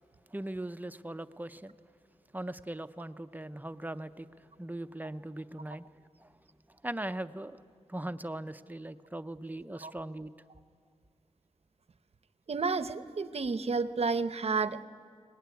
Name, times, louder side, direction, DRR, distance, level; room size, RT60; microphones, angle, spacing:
voice 1, 0.3-1.8 2.3-4.3 4.6-5.9 6.2-6.3 6.8-7.6 7.9-10.3, right 1 dB, 15° right, 11 dB, 0.6 m, -39 dB
voice 2, 12.5-14.8, right 4 dB, 55° right, 12 dB, 0.8 m, -31 dB
23.0 x 19.0 x 9.4 m, 2.2 s
wide cardioid pair, 110°, 13 cm